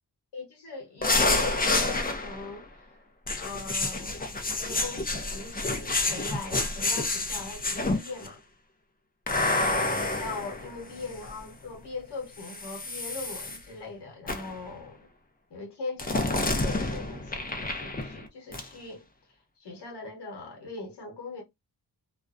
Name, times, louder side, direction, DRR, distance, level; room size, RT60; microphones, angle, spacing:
voice 1, 0.3-3.0 3.3-4.2 4.5-8.4 10.2-15.1 15.5-19.0 19.6-21.4, left 3 dB, 80° left, 1.0 m, -40 dB
sound 1, 1.0-2.5 3.3-8.3 9.3-11.4 12.4-13.6 14.3-14.6 16.0-18.3 18.5-18.7, left 2 dB, 20° left, 0.6 m, -29 dB
2.4 x 2.1 x 2.4 m
cardioid pair, 65°, 40 cm